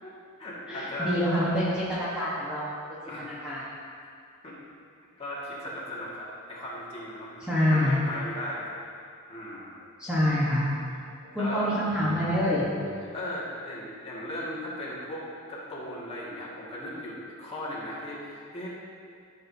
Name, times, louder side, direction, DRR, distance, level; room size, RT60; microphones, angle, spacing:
voice 1, 0.0-1.2 3.1-3.4 4.4-4.6 5.2-7.4 7.7-8.8 9.3-9.8 11.3-11.7 13.1-15.2 15.5-18.7, left 1 dB, 25° left, -8 dB, 2.0 m, -37 dB
voice 2, 0.7-2.8 3.4-3.6 7.4-8.0 10.0-10.7 11.2-12.6, left 1 dB, 5° right, -10 dB, 1.2 m, -26 dB
13.0 x 6.5 x 2.8 m, 2.3 s
head